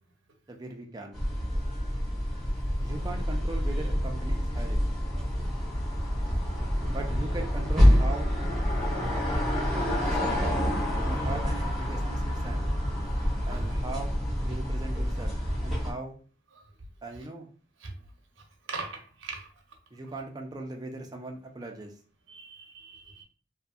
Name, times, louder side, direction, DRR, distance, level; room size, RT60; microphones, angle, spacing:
voice 1, 0.5-1.2 2.8-4.9 6.9-8.3 9.3-10.5 11.0-12.7 13.4-15.4 15.6-16.2 17.0-17.5 19.9-21.9, right 2 dB, 20° right, 0.4 m, -39 dB
sound 1, 1.1-15.9, equal, ahead, 0.9 m, -27 dB
voice 2, 18.7-19.5 22.3-23.2, right 3 dB, 85° right, 0.7 m, -40 dB
2.7 x 2.6 x 2.3 m
head